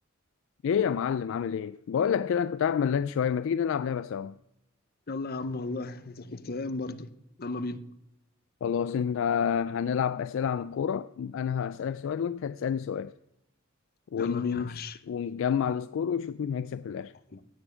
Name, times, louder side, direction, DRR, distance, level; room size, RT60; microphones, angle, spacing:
voice 1, 0.6-4.4 8.6-13.1 14.1-14.8 15.1-17.1, left 7 dB, 65° left, 0.3 m, -29 dB
voice 2, 5.1-7.1 7.4-7.8 14.2-15.0 17.3-17.4, left 2 dB, 50° left, 0.7 m, -35 dB
16.5 x 7.0 x 5.2 m
head